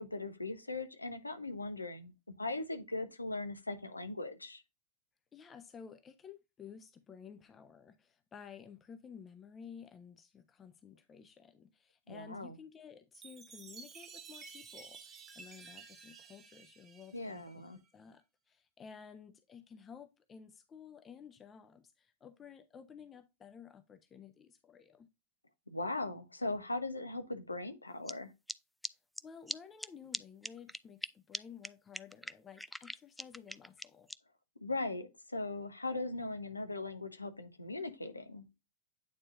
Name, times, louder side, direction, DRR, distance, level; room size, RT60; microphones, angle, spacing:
voice 1, 0.0-2.1 2.4-4.6 12.1-12.6 17.1-17.8 25.7-28.3 34.6-38.5, left 2 dB, 80° left, 1.0 m, -39 dB
voice 2, 5.3-17.6 17.9-25.1 29.2-34.1, left 7 dB, 20° left, 0.8 m, -53 dB
Chime, 13.1-17.8, right 5 dB, 25° right, 1.0 m, -53 dB
sound 1, 28.1-28.2 28.5-28.6 28.8-28.9 29.2-29.3 29.5-29.6 29.8-29.9 30.1-30.2 30.4-31.1 31.3-31.4 31.6-31.7 31.9-34.1, left 1 dB, ahead, 0.3 m, -40 dB
8.9 x 4.3 x 2.6 m
figure-of-eight pair, 90°, 0 cm